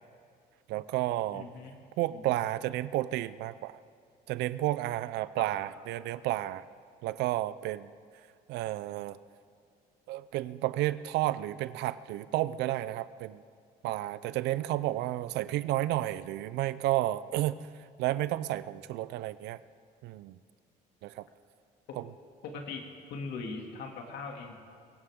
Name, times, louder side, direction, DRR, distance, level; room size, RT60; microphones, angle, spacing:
voice 1, 0.7-1.5 2.0-3.8 4.3-6.6 7.0-7.9 8.5-9.2 10.1-13.4 13.8-17.6 18.0-19.6 20.0-20.4 21.0-21.3, right 15 dB, 85° right, 16 dB, 0.5 m, -31 dB
voice 2, 1.3-1.7 2.1-2.4 5.4-5.5 22.4-22.8 23.1-24.5, left 4 dB, 75° left, 2 dB, 2.5 m, -40 dB
23.5 x 16.5 x 3.7 m, 2.2 s
cardioid pair, 110°, 17 cm